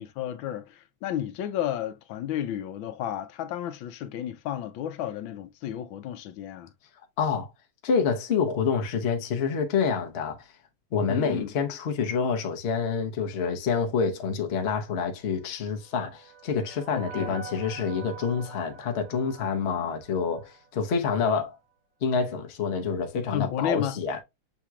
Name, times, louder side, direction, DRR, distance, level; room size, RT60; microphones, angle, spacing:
voice 1, 0.0-6.7 11.1-11.5 16.9-17.4 23.3-24.0, left 11 dB, 80° left, 1.3 m, -32 dB
voice 2, 7.2-7.5 7.8-10.5 10.9-21.6 22.0-24.2, left 5 dB, 50° left, 0.8 m, -27 dB
sound 1, 15.4-20.7, right 4 dB, 65° right, 2.9 m, -45 dB
6.9 x 2.9 x 2.3 m
omnidirectional pair, 2.2 m